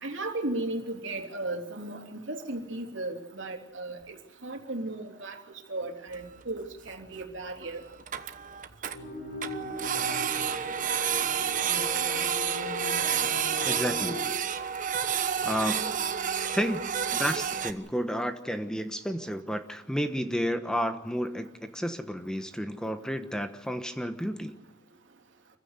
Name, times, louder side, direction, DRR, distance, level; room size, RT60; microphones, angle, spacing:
voice 1, 0.0-7.8, right 2 dB, 85° right, 3 dB, 3.2 m, -36 dB
Printer, 6.1-6.2 6.4-6.5 6.9-7.0 7.2-7.3 7.6-7.7 7.9-9.0 9.4-17.7, right 8 dB, 45° right, 1.2 m, -30 dB
sound 1, 8.9-14.2, left 2 dB, 60° left, 6.9 m, -38 dB
voice 2, 13.6-14.2 15.0-16.0 16.5-16.8 17.1-24.5, equal, 5° left, 8 dB, 1.2 m, -31 dB
26.5 x 15.5 x 8.1 m, 0.96 s
head